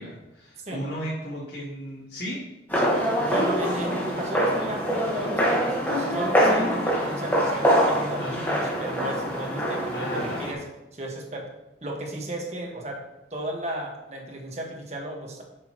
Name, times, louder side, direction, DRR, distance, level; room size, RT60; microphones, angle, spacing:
voice 1, 0.0-2.4 2.7-2.9 8.2-8.5 9.9-10.5, equal, 80° left, -10 dB, 3.0 m, -35 dB
sound 1, 2.7-10.5, equal, 10° left, 1.4 m, -24 dB
voice 2, 3.3-10.6 10.9-11.5 11.8-13.0 13.3-15.4, right 1 dB, 40° right, 0 dB, 1.6 m, -34 dB
10.5 x 6.5 x 3.1 m, 0.97 s
head